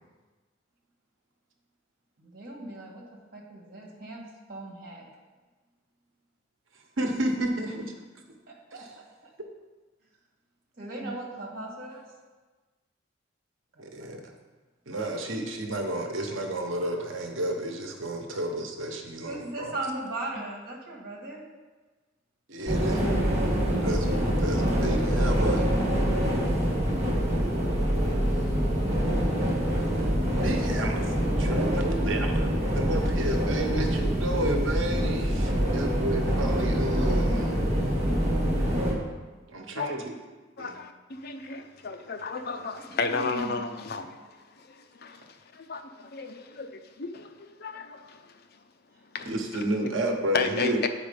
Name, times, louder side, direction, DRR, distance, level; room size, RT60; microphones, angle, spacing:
voice 1, 2.2-5.1 8.5-9.3 10.8-12.0 13.7-14.3 19.3-21.4 22.6-23.5 43.1-43.6 44.1-44.2, right 2 dB, 50° right, -2 dB, 2.0 m, -39 dB
voice 2, 7.0-7.8 11.0-11.1 13.8-14.2 14.9-19.7 22.5-23.0 23.8-25.7 30.4-31.1 31.4-32.5 32.7-37.6 39.5-40.1 40.6-40.7 49.3-50.8, right 1 dB, 85° right, 3 dB, 1.0 m, -31 dB
sound 1, 22.7-38.9, equal, 35° right, 1.6 m, -25 dB
voice 3, 40.6-44.2 44.7-48.2 49.1-49.3 49.8-49.9 50.3-50.9, left 4 dB, 55° left, 7 dB, 0.6 m, -33 dB
8.8 x 5.0 x 5.1 m, 1.3 s
head